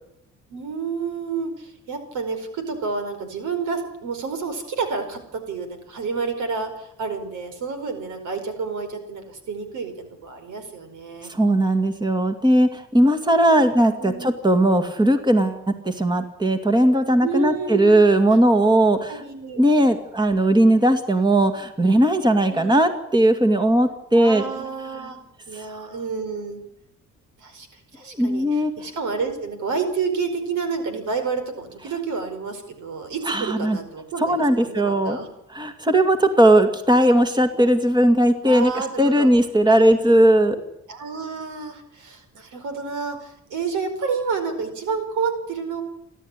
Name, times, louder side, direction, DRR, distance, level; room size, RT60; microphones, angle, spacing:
voice 1, 0.5-11.3 13.5-14.3 17.2-17.9 19.1-19.6 22.5-22.9 24.1-25.2 25.5-26.6 27.4-27.7 27.9-35.3 38.4-39.3 39.7-40.0 40.9-45.8, right 5 dB, 80° right, 8 dB, 5.0 m, -29 dB
voice 2, 11.3-19.2 19.6-24.4 25.6-25.7 28.2-28.7 33.3-33.8 34.2-35.2 35.5-40.6, right 1 dB, 15° right, 7 dB, 2.3 m, -18 dB
29.0 x 12.0 x 9.9 m, 0.79 s
cardioid pair, 90°, 30 cm